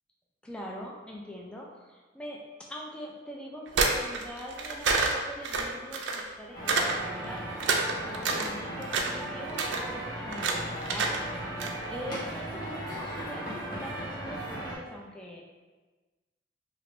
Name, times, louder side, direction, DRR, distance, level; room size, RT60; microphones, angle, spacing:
voice 1, 0.4-7.4 8.0-11.2 11.9-15.4, equal, 5° left, -2 dB, 0.3 m, -42 dB
sound 1, 3.7-6.3 6.7-6.9 7.3-8.5 8.8-9.2 9.5-9.8 10.3-10.5 10.8-11.2 11.4-11.7, right 4 dB, 80° right, 0.4 m, -27 dB
sound 2, 6.5-14.8, right 1 dB, 50° left, 1.0 m, -37 dB
3.1 x 2.5 x 2.9 m, 1.3 s
head